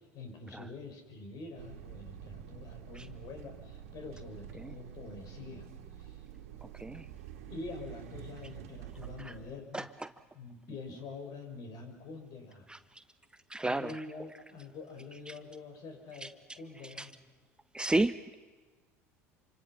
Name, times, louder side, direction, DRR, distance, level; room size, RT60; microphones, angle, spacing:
voice 1, 0.0-5.7 6.0-6.3 7.5-9.9 10.3-12.7 13.6-17.1, left 3 dB, 50° left, 5 dB, 5.6 m, -46 dB
sound 1, 1.6-9.6, right 10 dB, 75° right, 2.0 m, -48 dB
voice 2, 6.6-7.1 9.7-10.1 12.7-12.8 13.5-13.9 15.3-15.4 16.2-16.3 17.0-17.1 17.7-18.4, right 2 dB, 10° right, 12 dB, 0.7 m, -32 dB
27.5 x 25.0 x 5.9 m, 1.3 s
hypercardioid pair, 75°, 8 cm